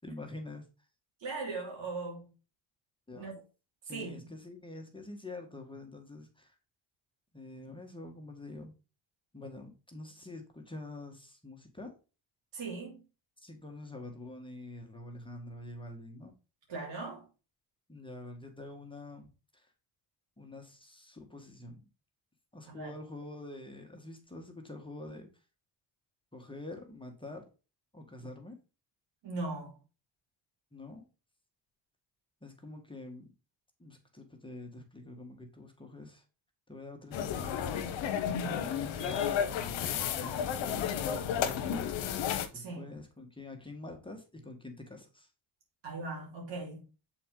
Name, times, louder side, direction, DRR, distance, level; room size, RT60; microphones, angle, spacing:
voice 1, 0.0-0.7 3.1-3.3 3.8-6.5 7.3-8.7 9.3-11.9 13.4-16.3 17.9-19.7 20.4-21.8 22.5-25.3 26.3-27.4 27.9-28.6 30.7-31.1 32.4-33.3 33.8-36.2 36.7-39.4 40.1-42.0 42.5-45.3, left 2 dB, 10° left, 1.5 m, -46 dB
voice 2, 1.2-2.3 3.2-3.4 3.9-4.3 12.5-13.0 16.7-17.3 22.7-22.9 29.2-29.8 38.3-38.7 42.5-42.9 45.8-46.8, right 3 dB, 75° right, 3.0 m, -39 dB
sound 1, 37.1-42.5, left 8 dB, 85° left, 0.9 m, -32 dB
7.0 x 4.2 x 3.8 m
cardioid pair, 80°, 43 cm